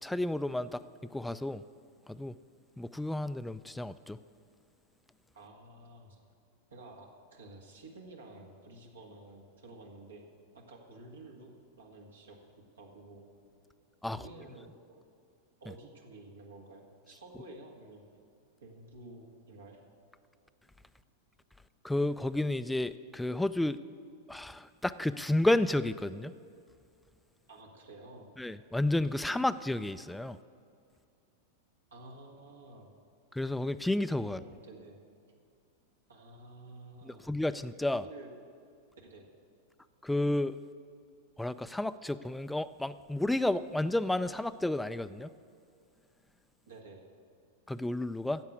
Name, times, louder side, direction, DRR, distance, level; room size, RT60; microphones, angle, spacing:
voice 1, 0.0-0.8 1.1-1.6 2.1-2.3 2.8-4.2 14.0-14.2 21.8-23.8 24.3-26.3 28.4-30.4 33.3-34.4 37.0-38.0 40.0-40.6 41.4-45.3 47.7-48.4, left 1 dB, 5° left, 13 dB, 0.4 m, -31 dB
voice 2, 5.3-6.2 6.7-10.3 10.5-12.4 12.8-13.2 14.1-15.0 15.6-18.0 18.6-19.8 27.5-28.3 31.9-32.9 34.2-35.0 36.1-37.3 37.9-38.3 39.0-39.3 46.7-47.0, right 2 dB, 85° right, 0 dB, 1.8 m, -51 dB
10.5 x 7.5 x 8.2 m, 2.3 s
hypercardioid pair, 100°, 0 cm